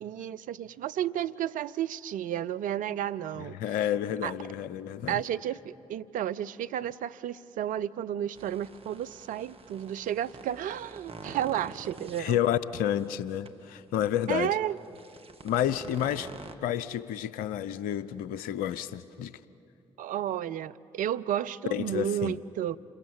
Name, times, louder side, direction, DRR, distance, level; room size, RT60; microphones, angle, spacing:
voice 1, 0.0-3.6 4.2-4.3 5.1-12.4 14.3-14.8 20.0-22.8, right 11 dB, 65° right, 0.5 m, -32 dB
voice 2, 3.4-5.2 12.2-14.5 15.4-16.3 16.6-19.3 21.7-22.3, left 10 dB, 75° left, 0.7 m, -30 dB
sound 1, 8.4-12.2 12.8-13.0 13.5-13.6 14.8-16.5, right 3 dB, 40° right, 1.8 m, -47 dB
28.0 x 22.5 x 7.2 m
hypercardioid pair, 40°, 15 cm